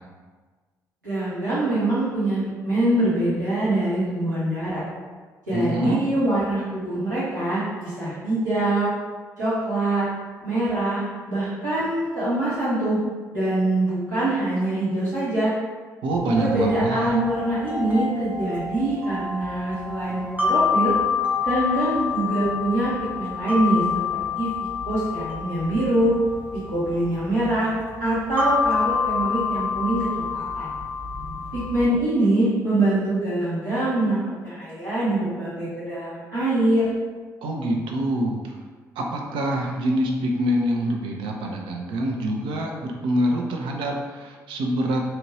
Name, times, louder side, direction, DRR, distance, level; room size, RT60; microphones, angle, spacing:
voice 1, 1.0-4.8 5.5-8.9 9.4-10.1 10.4-11.0 11.3-13.0 13.3-15.5 16.4-20.9 21.4-23.8 24.3-24.5 24.8-26.2 26.7-27.7 28.0-30.7 31.5-36.9, right 1 dB, 90° right, -13 dB, 1.2 m, -24 dB
voice 2, 5.5-6.0 16.0-17.2 37.4-38.5 39.0-45.1, right 1 dB, 65° right, 1 dB, 0.5 m, -25 dB
sound 1, 16.1-31.9, left 5 dB, 20° right, 0.8 m, -28 dB
2.9 x 2.5 x 3.1 m, 1.4 s
figure-of-eight pair, 45°, 9 cm